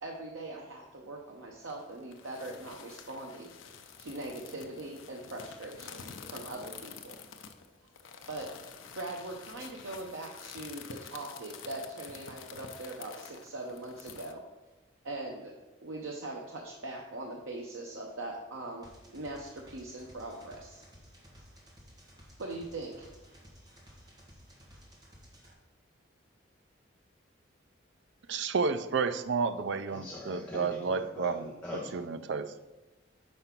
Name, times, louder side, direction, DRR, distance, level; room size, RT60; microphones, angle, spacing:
voice 1, 0.0-3.5 4.0-7.1 8.3-8.5 9.0-14.4 15.0-15.5 15.8-18.9 19.1-20.8 22.4-23.1, right 2 dB, 90° right, 0 dB, 0.8 m, -41 dB
sound 1, 1.6-14.3, left 6 dB, 85° left, 0.6 m, -49 dB
sound 2, 18.8-25.5, equal, 20° right, 1.2 m, -55 dB
voice 2, 28.3-31.5 31.9-32.5, right 5 dB, 70° right, 11 dB, 0.4 m, -31 dB
voice 3, 29.9-32.0, left 2 dB, 5° left, -5 dB, 0.7 m, -42 dB
5.3 x 4.8 x 5.8 m, 1.1 s
head